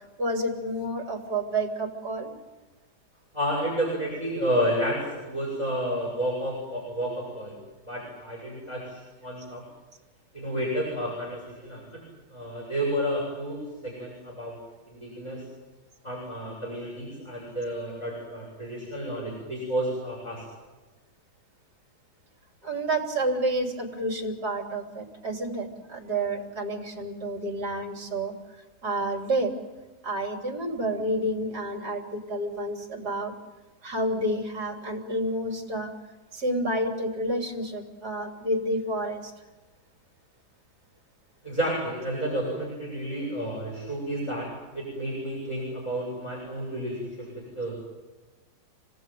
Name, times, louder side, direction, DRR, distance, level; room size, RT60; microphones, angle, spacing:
voice 1, 0.0-2.3 22.6-28.3 28.8-29.5 30.0-33.3 33.8-35.9 36.3-39.3, right 1 dB, 65° right, 3 dB, 3.8 m, -29 dB
voice 2, 3.3-7.6 7.9-9.6 10.3-12.0 12.3-14.5 14.9-15.4 16.0-20.4 41.4-44.5 44.7-47.1 47.6-47.7, equal, 15° left, -5 dB, 8.1 m, -31 dB
27.5 x 18.5 x 9.3 m, 1.2 s
omnidirectional pair, 1.8 m